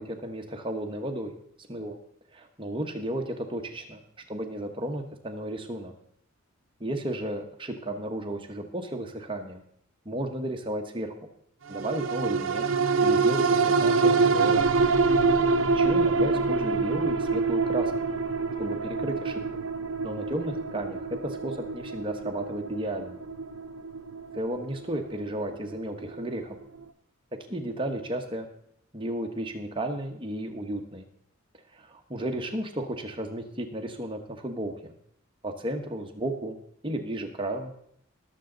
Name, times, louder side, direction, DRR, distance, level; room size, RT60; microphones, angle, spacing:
voice 1, 0.0-1.3 1.7-2.0 2.3-4.0 4.3-5.9 6.8-9.6 10.0-11.1 11.7-12.7 13.0-14.6 15.7-17.9 18.6-19.4 20.0-23.2 24.3-26.6 27.5-28.5 28.9-31.0 31.7-34.9 35.4-36.6 36.8-37.7, right 1 dB, 25° right, 4 dB, 1.1 m, -33 dB
sound 1, 11.7-26.4 26.8-26.9, right 4 dB, 60° right, 0.7 m, -26 dB
20.0 x 7.1 x 3.9 m, 0.69 s
head